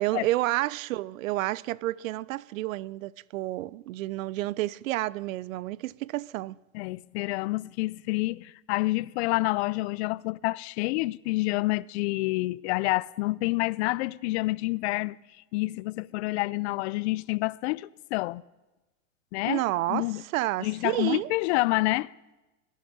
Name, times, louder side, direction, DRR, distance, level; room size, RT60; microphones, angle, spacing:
voice 1, 0.0-6.6 19.4-21.3, right 17 dB, 75° right, 0.5 m, -30 dB
voice 2, 6.7-15.2 15.5-18.4 19.3-19.6 19.9-20.2 20.6-22.1, left 21 dB, 55° left, 0.5 m, -28 dB
19.5 x 11.0 x 5.4 m
hypercardioid pair, 115°, 40 cm